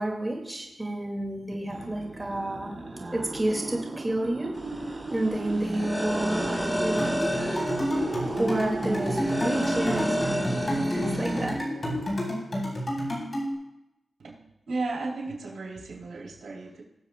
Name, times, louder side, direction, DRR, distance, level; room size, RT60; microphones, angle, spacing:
voice 1, 0.0-2.7 3.1-4.5 5.1-7.8 8.2-10.7 10.9-11.6, right 1 dB, 15° right, -1 dB, 2.0 m, -30 dB
sound 1, 1.5-12.6, right 2 dB, 45° right, 3.8 m, -36 dB
sound 2, 4.5-11.5, equal, 5° left, 3.7 m, -31 dB
sound 3, 7.0-13.5, equal, 35° left, 4.0 m, -30 dB
voice 2, 14.7-16.8, right 3 dB, 80° right, -3 dB, 2.9 m, -34 dB
21.0 x 7.3 x 2.2 m, 0.90 s
cardioid pair, 75°, 0 cm